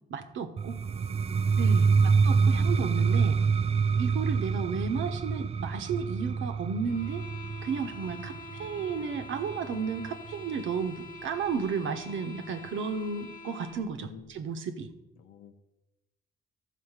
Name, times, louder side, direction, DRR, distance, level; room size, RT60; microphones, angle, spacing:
voice 1, 0.1-0.8 1.6-3.4 4.0-7.2 7.6-8.3 8.6-14.9, right 5 dB, 75° right, 7 dB, 1.1 m, -33 dB
sound 1, 0.6-10.4, right 5 dB, 30° right, 0.4 m, -26 dB
voice 2, 0.8-1.4 1.7-2.1 14.0-14.5 15.2-15.5, left 9 dB, 75° left, 6 dB, 0.8 m, -52 dB
sound 2, 6.8-13.9, left 2 dB, 40° left, 1.2 m, -46 dB
12.5 x 4.5 x 7.3 m, 0.98 s
cardioid pair, 90°, 20 cm